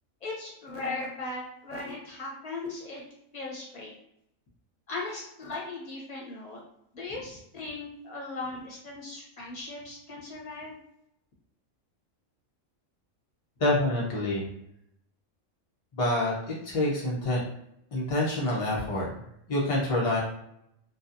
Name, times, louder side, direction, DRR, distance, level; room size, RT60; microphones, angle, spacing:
voice 1, 0.2-3.0 3.3-3.9 4.9-6.6 6.9-10.7, left 3 dB, 35° left, -4 dB, 0.7 m, -38 dB
voice 2, 13.6-14.5 16.0-16.4 16.6-17.4 17.9-19.1 19.5-20.2, left 1 dB, 60° left, -5 dB, 0.3 m, -26 dB
2.6 x 2.3 x 2.4 m, 0.78 s
omnidirectional pair, 1.4 m